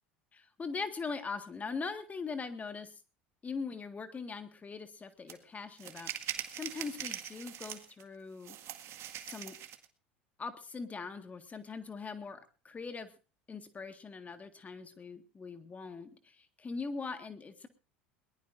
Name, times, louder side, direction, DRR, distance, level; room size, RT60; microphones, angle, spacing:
voice 1, 0.3-3.0 3.4-8.6 9.2-9.6 10.4-13.1 13.5-17.7, left 4 dB, 25° left, 8 dB, 1.7 m, -41 dB
sound 1, 5.3-5.4 5.8-8.0 8.4-9.8, right 11 dB, 50° right, 1.9 m, -42 dB
22.0 x 19.5 x 2.6 m, 0.35 s
hypercardioid pair, 75°, 6 cm